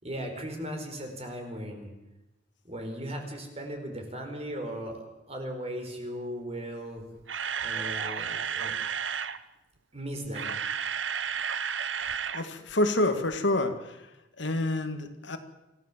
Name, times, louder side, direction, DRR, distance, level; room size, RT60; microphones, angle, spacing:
voice 1, 0.0-1.9 2.6-7.1 7.6-8.7 9.9-10.6, equal, 35° right, 4 dB, 4.7 m, -37 dB
Camera, 7.0-9.4 10.2-12.4 12.7-12.9 13.3-13.4, right 7 dB, 90° right, 1.0 m, -32 dB
voice 2, 12.3-14.0 14.4-15.4, left 1 dB, 75° left, 7 dB, 2.1 m, -27 dB
26.5 x 15.0 x 7.5 m, 0.98 s
head